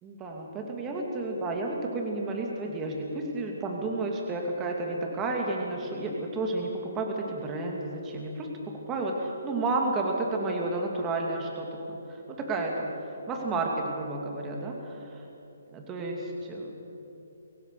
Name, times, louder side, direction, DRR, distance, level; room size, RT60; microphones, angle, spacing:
voice 1, 0.0-8.5 8.9-13.0 13.3-15.2 15.7-16.7, right 2 dB, 20° right, 1 dB, 2.7 m, -31 dB
24.0 x 17.0 x 6.8 m, 2.8 s
figure-of-eight pair, 140°, 0 cm